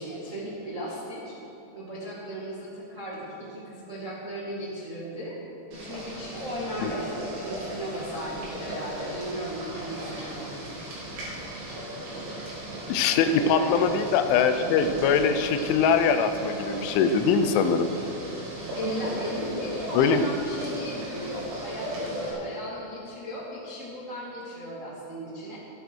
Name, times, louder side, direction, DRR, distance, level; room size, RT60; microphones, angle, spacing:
voice 1, 0.0-1.3 1.7-5.4 5.7-10.5 13.4-13.8 18.7-25.6, equal, 65° right, -7 dB, 0.7 m, -36 dB
Boiling, 5.7-22.3, right 1 dB, 85° right, 5.9 m, -37 dB
voice 2, 12.9-17.9 19.9-20.3, left 6 dB, 80° left, 8 dB, 3.1 m, -22 dB
13.5 x 12.0 x 6.3 m, 2.9 s
omnidirectional pair, 5.5 m